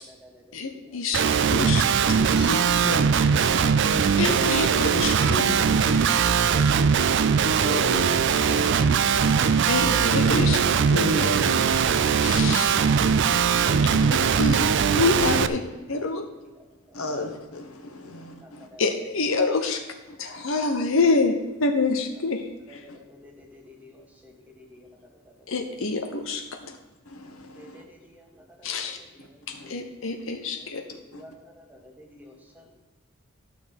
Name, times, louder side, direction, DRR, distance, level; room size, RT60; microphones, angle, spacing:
voice 1, 0.0-1.0 16.3-17.2 18.0-19.4 19.6-19.8 22.7-25.6 27.3-29.9 30.5-32.7, left 1 dB, 5° right, 1 dB, 1.5 m, -51 dB
voice 2, 0.5-1.8 4.2-4.7 5.0-5.5 9.7-10.6 12.2-12.7 14.1-14.6 14.9-15.6 15.9-16.2 18.8-19.8 20.2-22.8 25.5-26.4 28.6-29.0 29.7-30.8, left 4 dB, 65° left, 5 dB, 0.8 m, -26 dB
Guitar, 1.1-15.5, right 6 dB, 55° right, 0.4 m, -21 dB
voice 3, 2.2-4.3 4.7-6.5 7.6-9.9 10.2-12.5 13.0-14.0 15.9-16.0 16.9-18.7 20.1-20.5 22.9-23.0 26.6-26.8 27.0-27.8 29.2-29.7 30.7-31.2, left 2 dB, 85° left, 4 dB, 1.4 m, -36 dB
11.0 x 6.4 x 5.3 m, 1.1 s
head